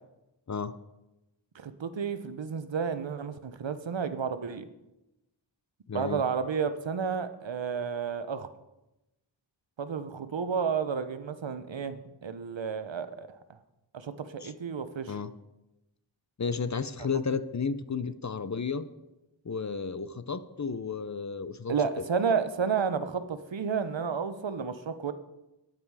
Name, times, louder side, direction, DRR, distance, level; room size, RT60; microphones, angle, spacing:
voice 1, 1.5-4.7 5.9-8.5 9.8-13.6 13.9-15.2 17.0-17.1 21.7-25.1, right 6 dB, 75° right, 11 dB, 0.8 m, -31 dB
voice 2, 5.9-6.2 14.4-14.5 15.1-15.3 16.4-18.8 19.4-21.7, left 5 dB, 40° left, 14 dB, 0.6 m, -32 dB
9.2 x 8.8 x 4.8 m, 0.95 s
wide cardioid pair, 55°, 45 cm